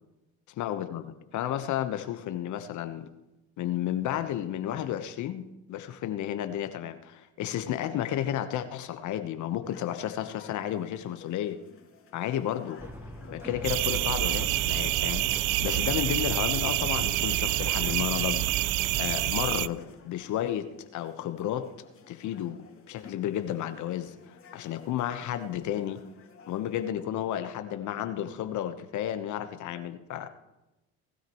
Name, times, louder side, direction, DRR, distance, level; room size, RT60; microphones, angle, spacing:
voice 1, 0.6-3.1 3.6-5.4 5.7-11.6 12.1-12.8 13.3-18.4 19.0-21.7 22.1-26.0 26.5-30.3, left 11 dB, 60° left, 10 dB, 1.2 m, -32 dB
sound 1, 9.6-26.9, left 5 dB, 40° left, 2.8 m, -54 dB
sound 2, 12.8-19.3, right 1 dB, 5° right, 1.4 m, -40 dB
sound 3, 13.6-19.7, right 18 dB, 75° right, 0.5 m, -27 dB
19.5 x 13.0 x 3.1 m, 0.98 s
supercardioid pair, 80°, 33 cm